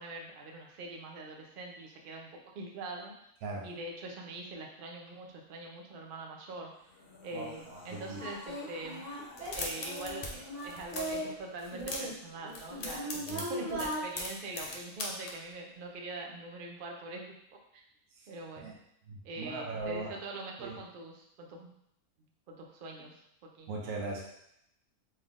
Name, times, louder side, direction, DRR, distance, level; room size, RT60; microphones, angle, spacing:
voice 1, 0.0-3.1 3.6-6.7 7.2-9.0 9.5-13.1 13.5-17.3 17.7-17.8 18.3-18.7 19.2-21.7 22.5-23.7, right 2 dB, 55° right, 1 dB, 0.6 m, -43 dB
sound 1, 6.7-12.0, left 2 dB, 50° left, 0.8 m, -55 dB
voice 2, 7.3-8.2 13.3-13.4 18.1-18.3 18.6-18.7 19.1-20.2 20.6-20.7 23.7-24.2, right 3 dB, 80° right, -2 dB, 1.2 m, -39 dB
Singing, 7.5-7.6 8.1-11.3 11.7-14.0, right 1 dB, 30° right, 0.9 m, -38 dB
sound 2, 9.3-10.3 10.6-11.2 11.6-12.2 12.5-15.3, left 2 dB, 80° left, 0.3 m, -39 dB
4.1 x 3.4 x 2.4 m, 0.76 s
omnidirectional pair, 1.5 m